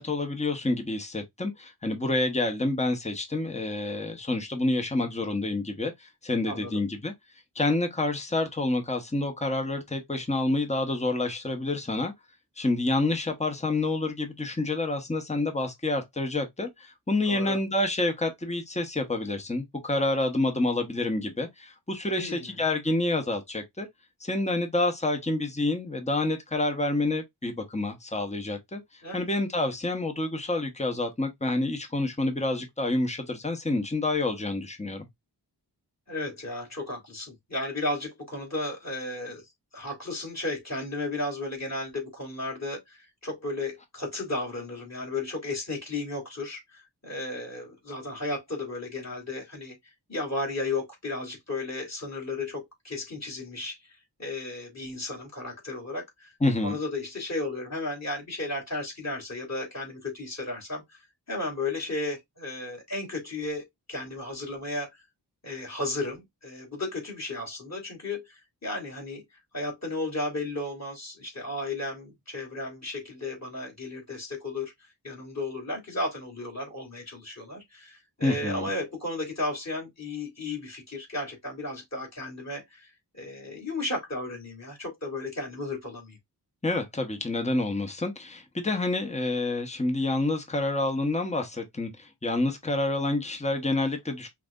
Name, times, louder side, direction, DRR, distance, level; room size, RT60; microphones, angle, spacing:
voice 1, 0.0-7.1 7.5-12.1 12.6-23.9 24.2-35.1 56.4-56.8 78.2-78.7 86.6-94.3, left 2 dB, 15° left, 1.1 m, -28 dB
voice 2, 17.3-17.6 22.1-22.5 29.0-29.2 36.1-39.4 39.7-53.9 54.2-56.3 56.6-64.9 65.4-69.2 69.5-74.7 75.0-86.2, left 2 dB, 40° left, 3.4 m, -34 dB
5.8 x 2.7 x 2.5 m
wide cardioid pair, 55°, 42 cm